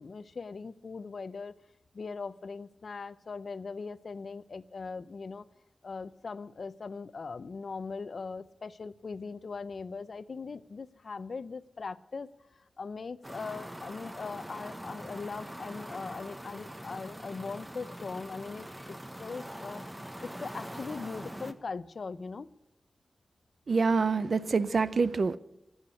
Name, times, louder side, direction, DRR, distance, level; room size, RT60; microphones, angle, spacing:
voice 1, 0.0-1.5 1.9-5.5 5.8-19.9 20.2-22.5, left 4 dB, 65° left, 0.6 m, -40 dB
sound 1, 13.2-21.5, equal, 10° right, 0.9 m, -43 dB
voice 2, 23.7-25.4, right 4 dB, 65° right, 0.6 m, -26 dB
14.0 x 8.0 x 9.9 m
wide cardioid pair, 110°, 0 cm